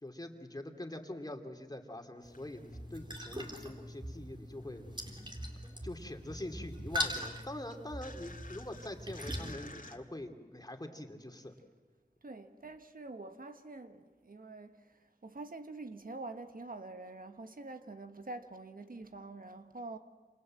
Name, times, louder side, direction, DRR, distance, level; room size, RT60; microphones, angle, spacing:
voice 1, 0.0-4.9 5.8-11.5, left 1 dB, 25° left, 2.8 m, -44 dB
sound 1, 2.1-4.1 4.3-10.0, left 3 dB, 60° left, 2.2 m, -54 dB
sound 2, 2.2-9.5, equal, 30° right, 4.0 m, -41 dB
voice 2, 12.2-20.0, right 2 dB, 60° right, 1.4 m, -46 dB
28.0 x 27.5 x 7.6 m
wide cardioid pair, 65°, 16 cm